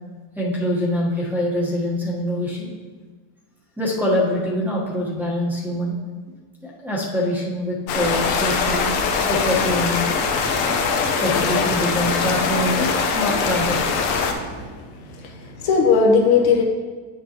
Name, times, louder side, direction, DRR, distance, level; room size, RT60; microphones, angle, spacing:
voice 1, 0.4-2.7 3.8-6.0 6.6-10.0 11.2-14.1, left 1 dB, 5° right, -4 dB, 1.1 m, -24 dB
sound 1, 7.9-14.3, left 5 dB, 80° left, 1.1 m, -22 dB
sound 2, 9.3-14.7, right 3 dB, 60° right, 1.0 m, -37 dB
voice 2, 14.5-16.6, left 5 dB, 50° left, 0 dB, 0.9 m, -19 dB
8.7 x 6.6 x 2.9 m, 1.4 s
cardioid pair, 155°, 49 cm